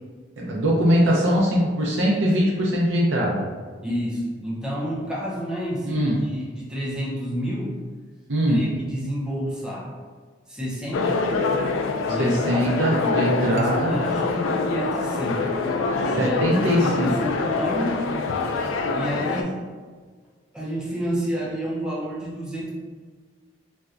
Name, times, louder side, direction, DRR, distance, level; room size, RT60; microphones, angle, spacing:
voice 1, 0.4-3.4 5.9-6.2 8.3-8.6 12.1-14.0 16.2-17.1, equal, 80° right, -3 dB, 0.5 m, -21 dB
voice 2, 3.8-7.8 8.5-9.9 10.5-11.3 12.1-12.8 13.4-15.5 16.0-18.1 18.9-19.6 20.5-22.7, equal, 5° right, -6 dB, 0.5 m, -29 dB
sound 1, 10.9-19.4, left 3 dB, 85° left, 0.3 m, -25 dB
4.1 x 2.1 x 2.4 m, 1.5 s
head